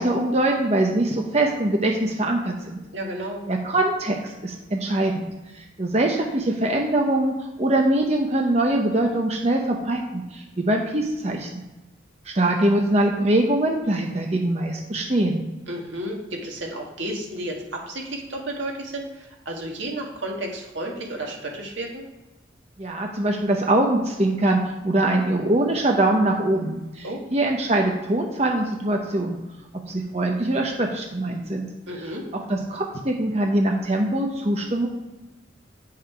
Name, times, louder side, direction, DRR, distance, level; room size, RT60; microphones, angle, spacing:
voice 1, 0.0-2.8 3.5-5.3 5.6-11.6 12.3-15.5 22.8-27.0 27.3-29.4 29.9-31.7 32.3-34.9, right 1 dB, 35° right, 1 dB, 0.8 m, -23 dB
voice 2, 2.9-3.4 15.7-22.0 27.0-27.2 31.9-32.2, right 1 dB, 80° right, 0 dB, 1.8 m, -32 dB
8.6 x 5.6 x 5.0 m, 1.0 s
head